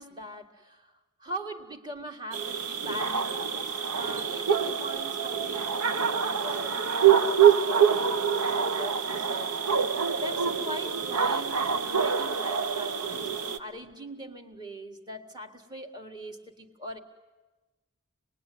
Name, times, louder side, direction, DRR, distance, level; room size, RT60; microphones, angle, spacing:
voice 1, 0.0-0.9 1.2-9.7 10.2-17.0, right 1 dB, 20° right, 4 dB, 1.7 m, -42 dB
sound 1, 2.3-13.6, right 7 dB, 75° right, 1.0 m, -26 dB
26.5 x 20.0 x 9.3 m, 1.2 s
head